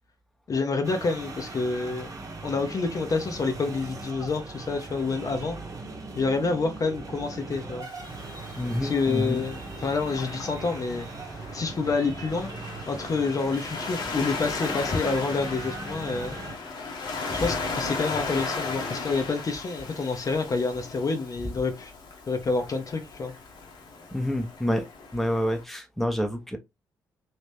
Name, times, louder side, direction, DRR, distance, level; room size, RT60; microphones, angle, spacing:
voice 1, 0.5-2.1 2.4-5.5 6.1-7.9 8.8-11.1 11.5-12.5 12.9-16.4 17.3-21.9 22.3-23.3, left 4 dB, 40° left, 0.8 m, -28 dB
sound 1, 0.8-16.5, right 3 dB, 35° right, 0.9 m, -39 dB
Waves surf, 7.8-25.6, left 4 dB, 55° left, 1.2 m, -36 dB
voice 2, 8.6-9.5 17.3-17.4 24.1-24.9 25.1-26.6, equal, ahead, 0.9 m, -28 dB
3.1 x 2.7 x 3.3 m
figure-of-eight pair, 40°, 9 cm